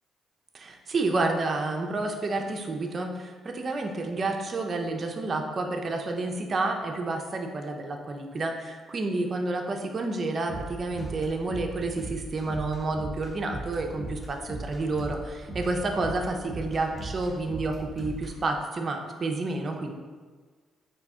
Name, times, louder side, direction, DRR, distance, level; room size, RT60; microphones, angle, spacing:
voice 1, 0.5-19.9, right 2 dB, 40° right, 3 dB, 0.5 m, -30 dB
sound 1, 10.5-18.3, right 2 dB, ahead, 0.8 m, -38 dB
3.9 x 2.7 x 3.5 m, 1.5 s
cardioid pair, 90°, 0 cm